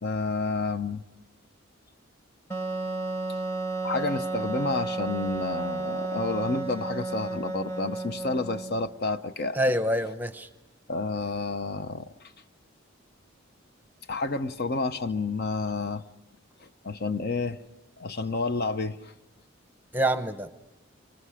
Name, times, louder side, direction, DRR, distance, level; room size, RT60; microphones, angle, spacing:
voice 1, 0.0-1.0 3.8-9.6 10.9-12.1 14.1-16.0 16.6-17.6 18.0-19.1, left 3 dB, 50° left, 0.7 m, -30 dB
Wind instrument woodwind instrument, 2.5-8.9, right 3 dB, 10° left, 1.2 m, -32 dB
voice 2, 9.5-10.5 19.9-20.5, right 1 dB, 10° right, 0.9 m, -26 dB
30.0 x 24.5 x 4.9 m
head